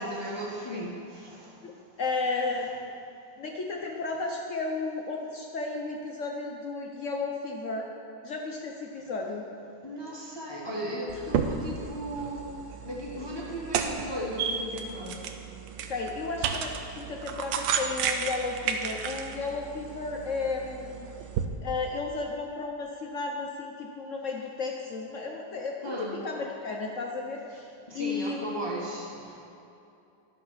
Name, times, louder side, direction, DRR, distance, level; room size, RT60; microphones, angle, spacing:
voice 1, 0.0-2.0 9.8-12.5 12.8-15.2 25.8-26.2 27.9-29.4, equal, 20° left, -4 dB, 0.9 m, -36 dB
voice 2, 2.0-2.9 3.4-7.9 8.2-9.5 15.9-21.1 21.6-27.7 27.9-28.6, left 3 dB, 60° left, 1 dB, 0.8 m, -33 dB
sound 1, 11.1-21.5, right 7 dB, 85° right, 1.4 m, -33 dB
11.5 x 6.7 x 5.5 m, 2.7 s
omnidirectional pair, 2.0 m